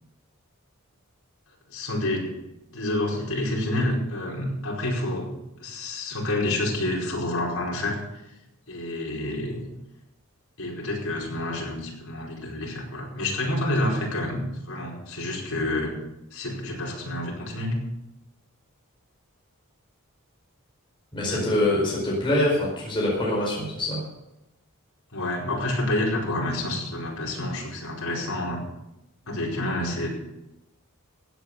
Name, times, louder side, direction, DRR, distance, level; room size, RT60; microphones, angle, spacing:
voice 1, 1.7-2.3 2.7-5.3 5.6-8.0 8.7-9.6 10.6-16.0 16.3-17.8 21.3-21.5 25.1-28.6 29.3-30.1, left 1 dB, 70° left, -3 dB, 4.8 m, -28 dB
voice 2, 21.1-24.0, left 1 dB, 20° left, -5 dB, 4.7 m, -24 dB
16.0 x 8.9 x 6.7 m, 0.92 s
head